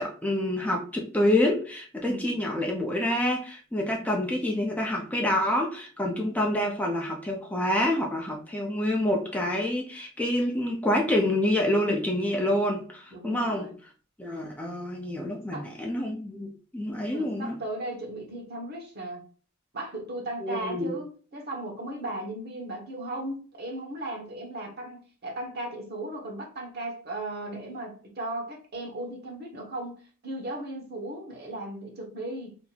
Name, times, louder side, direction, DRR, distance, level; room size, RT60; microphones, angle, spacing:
voice 1, 0.0-13.7 14.2-17.6 20.4-20.9, left 1 dB, 10° left, 0.6 m, -27 dB
voice 2, 2.0-2.4 3.9-4.2 6.1-6.5 13.1-13.8 15.5-15.7 17.0-19.2 19.7-32.6, right 1 dB, 50° right, 1.2 m, -37 dB
2.9 x 2.6 x 3.9 m
head